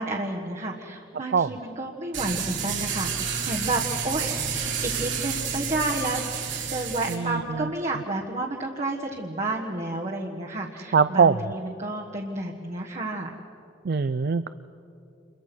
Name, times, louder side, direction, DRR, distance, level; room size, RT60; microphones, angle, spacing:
voice 1, 0.0-6.2 6.7-13.3, right 2 dB, 40° right, -1 dB, 1.5 m, -31 dB
sound 1, 2.1-7.1, right 6 dB, 90° right, 4.1 m, -30 dB
voice 2, 7.1-7.4 10.9-11.3 13.9-14.5, right 5 dB, 55° right, 13 dB, 0.4 m, -21 dB
28.0 x 22.5 x 6.1 m, 2.9 s
head